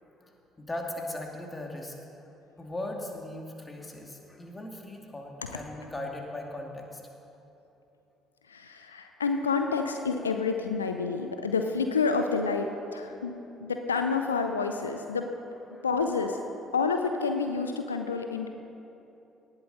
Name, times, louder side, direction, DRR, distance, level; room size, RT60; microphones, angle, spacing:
voice 1, 0.2-1.9 2.6-7.0 15.7-15.9, left 1 dB, 20° left, 1 dB, 2.3 m, -38 dB
voice 2, 8.5-15.3 15.8-16.4 16.7-18.5, left 4 dB, 85° left, 6 dB, 0.5 m, -29 dB
18.5 x 12.0 x 4.1 m, 3.0 s
figure-of-eight pair, 50°, 0 cm